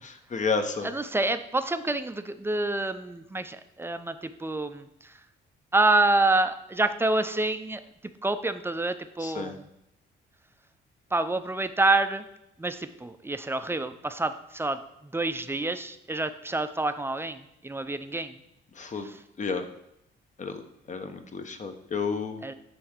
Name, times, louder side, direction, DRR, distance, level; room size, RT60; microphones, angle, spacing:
voice 1, 0.0-0.9 9.2-9.6 18.7-19.1 19.4-19.7 20.4-22.5, left 4 dB, 40° left, 7 dB, 1.0 m, -31 dB
voice 2, 0.9-5.1 5.7-7.8 8.2-9.6 11.1-12.2 12.6-18.4 22.4-22.5, right 2 dB, 10° right, 10 dB, 0.6 m, -27 dB
9.2 x 3.5 x 6.6 m, 0.80 s
cardioid pair, 90°, 20 cm